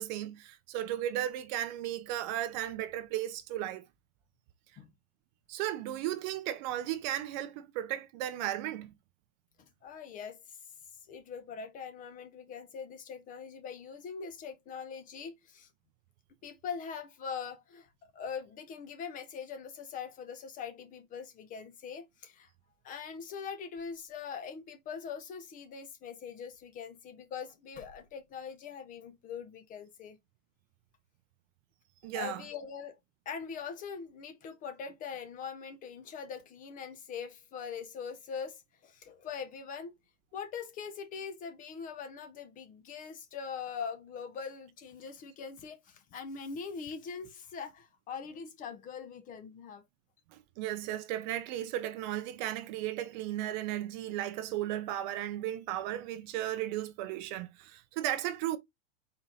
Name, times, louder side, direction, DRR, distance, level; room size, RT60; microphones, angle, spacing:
voice 1, 0.0-3.9 5.5-8.9 32.0-32.4 50.3-58.6, right 13 dB, 40° right, 0.4 m, -35 dB
voice 2, 9.6-10.6 11.1-15.7 16.4-22.5 22.8-30.2 32.1-33.0 33.3-39.9 40.3-49.8, left 6 dB, 20° left, 0.4 m, -42 dB
4.4 x 2.6 x 3.7 m
hypercardioid pair, 125°, 39 cm